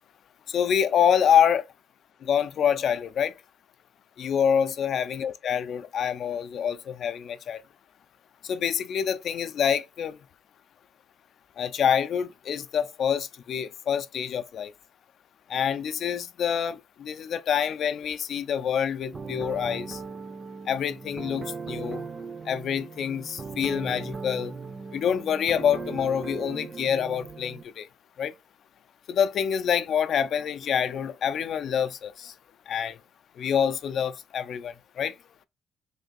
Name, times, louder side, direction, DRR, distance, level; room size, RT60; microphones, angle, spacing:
voice 1, 0.5-1.6 2.2-3.3 4.2-7.6 8.4-10.2 11.6-14.7 15.5-20.0 20.7-22.1 22.5-24.5 24.9-27.9 28.2-28.3 29.1-32.3 32.7-33.0 33.4-35.2, left 8 dB, 65° left, 0.4 m, -26 dB
sound 1, 19.1-27.6, right 4 dB, 35° right, 0.5 m, -38 dB
3.3 x 2.6 x 3.9 m
cardioid pair, 90°, 0 cm